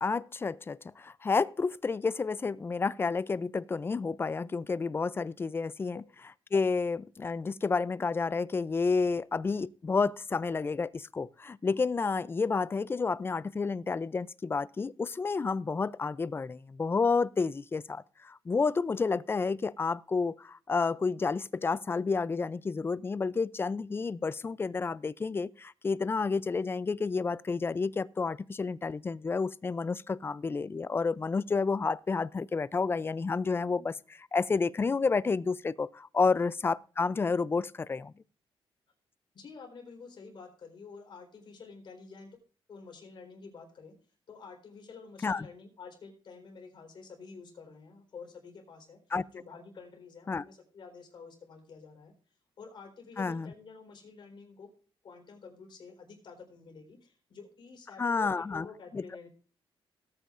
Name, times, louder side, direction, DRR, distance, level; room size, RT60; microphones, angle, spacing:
voice 1, 0.0-6.0 6.5-38.1 45.2-45.5 49.1-49.2 50.3-50.4 53.2-53.5 58.0-58.7 58.9-59.0, left 4 dB, 25° left, 0.4 m, -30 dB
voice 2, 39.3-42.4 42.7-43.9 44.3-49.0 49.3-52.1 52.6-54.7 55.0-59.3, left 5 dB, 55° left, 4.1 m, -49 dB
18.0 x 9.1 x 2.5 m
wide cardioid pair, 135°, 9 cm